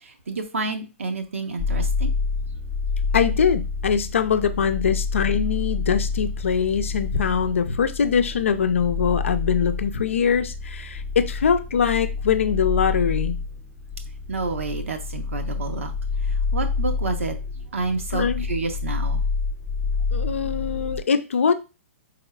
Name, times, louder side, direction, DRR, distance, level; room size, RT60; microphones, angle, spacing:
voice 1, 0.0-2.1 14.3-15.9 16.3-19.2, right 3 dB, 70° right, 6 dB, 0.8 m, -29 dB
sound 1, 1.6-21.0, left 4 dB, ahead, 0.5 m, -28 dB
voice 2, 3.1-13.4 18.1-18.4 20.1-21.5, left 7 dB, 65° left, 9 dB, 0.5 m, -22 dB
4.6 x 3.5 x 2.3 m, 0.30 s
figure-of-eight pair, 115°, 7 cm